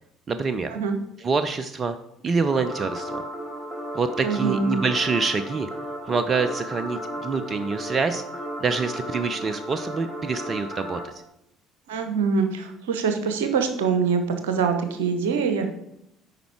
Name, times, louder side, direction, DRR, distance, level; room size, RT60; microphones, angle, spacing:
voice 1, 0.3-0.7 1.2-2.0 2.2-3.2 3.9-5.7 6.1-8.2 8.6-11.2, right 4 dB, 35° right, 10 dB, 0.6 m, -26 dB
sound 1, 2.5-11.0, right 1 dB, 5° right, 2.4 m, -34 dB
voice 2, 4.2-4.8 11.9-15.7, right 5 dB, 70° right, 7 dB, 1.0 m, -24 dB
9.2 x 5.2 x 4.6 m, 0.78 s
figure-of-eight pair, 55°, 0 cm